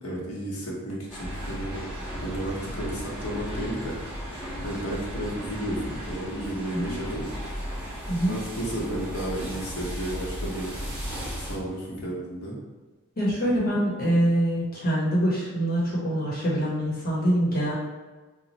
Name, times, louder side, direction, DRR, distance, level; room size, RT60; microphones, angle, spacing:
voice 1, 0.0-1.8 2.2-3.9 4.6-7.3 8.3-10.8 11.4-12.6, right 1 dB, 90° left, -4 dB, 1.0 m, -32 dB
sound 1, 1.1-11.6, equal, 5° right, 1.1 m, -35 dB
voice 2, 13.2-17.7, right 1 dB, 45° left, -6 dB, 1.0 m, -24 dB
3.1 x 2.2 x 4.0 m, 1.3 s
head